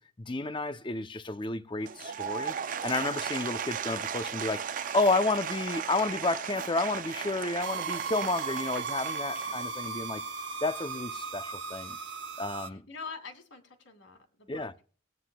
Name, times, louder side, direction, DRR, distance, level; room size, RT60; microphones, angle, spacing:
voice 1, 0.0-10.2 10.6-12.0 12.4-12.8 14.5-14.7, left 2 dB, 25° left, 0.6 m, -31 dB
Applause / Crowd, 1.8-10.0, right 7 dB, 45° right, 0.4 m, -36 dB
sound 1, 7.6-12.7, right 5 dB, 70° right, 0.9 m, -36 dB
voice 2, 12.6-14.8, left 4 dB, 90° left, 2.4 m, -45 dB
20.0 x 9.4 x 2.3 m
head